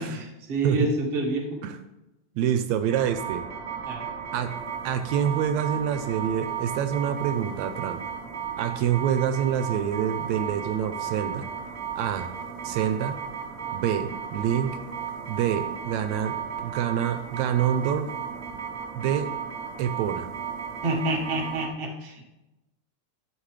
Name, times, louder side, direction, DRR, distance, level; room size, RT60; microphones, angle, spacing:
voice 1, 0.0-1.6 3.9-4.1 20.8-22.2, right 2 dB, 30° right, -2 dB, 1.0 m, -28 dB
voice 2, 2.4-3.5 4.3-4.6 4.8-8.0 8.6-11.5 12.0-12.3 12.6-13.2 13.7-14.8 15.3-18.1 18.9-19.3 19.8-20.3, right 9 dB, 80° right, 9 dB, 1.8 m, -26 dB
sound 1, 2.9-21.7, right 8 dB, 65° right, 0.8 m, -35 dB
12.0 x 7.6 x 3.2 m, 0.99 s
omnidirectional pair, 3.4 m